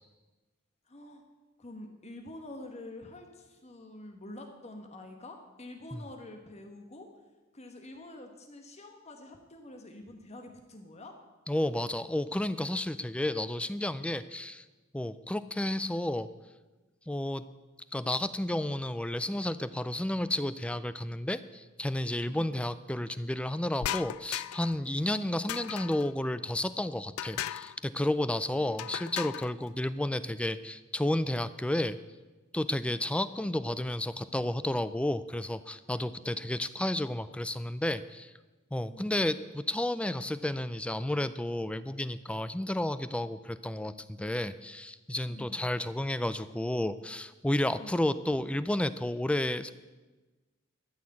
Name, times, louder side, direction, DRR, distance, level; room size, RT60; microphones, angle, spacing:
voice 1, 0.9-1.2 1.6-7.1 7.5-11.2 22.3-22.6 28.5-29.0 38.8-39.2 45.3-45.7 47.8-48.0, left 1 dB, 30° left, 4 dB, 1.2 m, -47 dB
voice 2, 11.5-14.6 14.9-16.3 17.1-17.4 17.9-32.0 32.5-38.3 38.7-49.7, left 1 dB, 5° left, 14 dB, 0.3 m, -32 dB
sound 1, 23.8-24.8 25.5-26.1 27.2-27.8 28.8-29.5, left 12 dB, 85° left, 0.3 m, -36 dB
13.0 x 6.5 x 8.6 m, 1.2 s
head